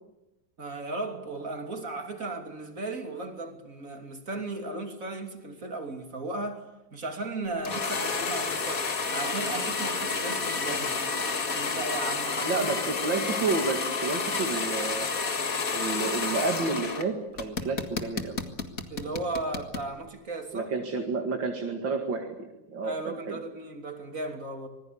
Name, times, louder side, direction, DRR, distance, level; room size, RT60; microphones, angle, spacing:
voice 1, 0.6-6.6 6.9-10.9 11.5-12.8 18.9-20.7 22.8-24.7, right 2 dB, 45° right, 3.3 m, -36 dB
sound 1, 7.6-17.0 17.4-19.9, left 4 dB, 45° left, 2.3 m, -30 dB
voice 2, 12.4-15.1 15.7-18.4 20.5-23.4, right 4 dB, 75° right, 2.9 m, -30 dB
26.0 x 20.0 x 8.6 m
omnidirectional pair, 2.0 m